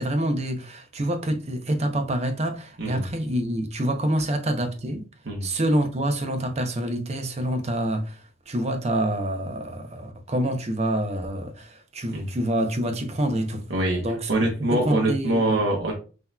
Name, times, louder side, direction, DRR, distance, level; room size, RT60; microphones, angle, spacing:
voice 1, 0.0-5.0 5.4-13.6 14.0-14.3 14.7-15.6, right 1 dB, 35° right, 0.7 m, -27 dB
voice 2, 13.7-14.0 14.3-15.9, right 1 dB, 70° right, 0.9 m, -24 dB
5.7 x 2.9 x 2.2 m
head